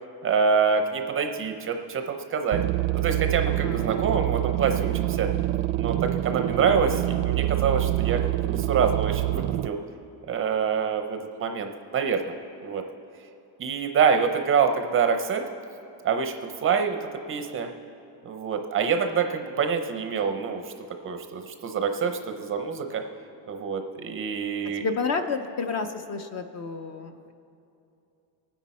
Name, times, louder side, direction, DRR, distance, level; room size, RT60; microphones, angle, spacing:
voice 1, 0.2-2.6 2.9-5.3 5.8-9.8 10.3-12.3 12.6-12.8 13.6-15.4 16.0-17.0 17.3-17.7 18.2-20.7 21.0-23.0 23.5-24.8, right 6 dB, 25° right, 6 dB, 0.5 m, -26 dB
sound 1, 2.5-9.7, right 16 dB, 75° right, 0.5 m, -26 dB
voice 2, 24.8-27.3, left 4 dB, 35° left, 8 dB, 0.5 m, -30 dB
24.0 x 9.7 x 4.1 m, 2.7 s
cardioid pair, 170°, 49 cm